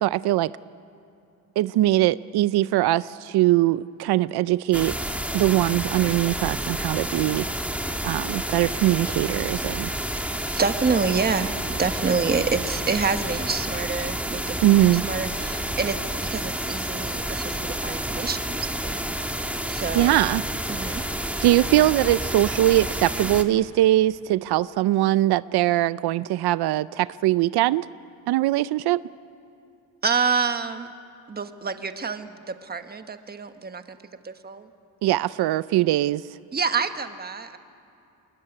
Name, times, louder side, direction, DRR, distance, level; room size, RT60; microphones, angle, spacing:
voice 1, 0.0-0.5 1.6-4.9 5.3-7.4 8.0-9.9 14.6-15.0 19.9-20.4 20.9-21.0 21.4-27.9 28.3-29.0 35.0-36.2, right 15 dB, 85° right, 17 dB, 0.6 m, -21 dB
sound 1, 4.7-23.4, right 1 dB, 5° right, 1.4 m, -30 dB
voice 2, 10.1-18.9 19.7-20.1 20.7-21.0 30.0-30.9 31.3-34.0 34.2-34.7 36.5-37.6, right 5 dB, 25° right, 8 dB, 1.3 m, -27 dB
27.0 x 21.5 x 10.0 m, 2.7 s
cardioid pair, 145°, 37 cm